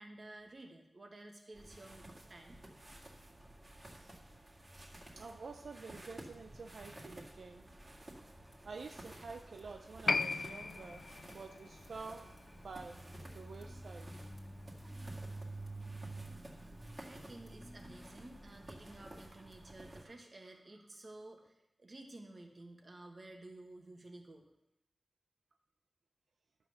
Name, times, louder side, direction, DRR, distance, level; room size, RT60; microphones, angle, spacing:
voice 1, 0.0-2.6 16.9-24.4, right 2 dB, 50° right, 2 dB, 1.6 m, -53 dB
sound 1, 1.5-20.0, right 1 dB, 30° right, 2.0 m, -51 dB
voice 2, 5.2-7.7 8.6-13.0 13.3-14.1, right 4 dB, 85° right, 4 dB, 0.6 m, -49 dB
sound 2, 8.1-19.7, left 1 dB, 5° left, 2.0 m, -65 dB
Piano, 10.1-17.0 17.3-17.4, left 4 dB, 60° left, 0.4 m, -41 dB
12.0 x 5.8 x 6.6 m, 0.87 s
wide cardioid pair, 100°, 0 cm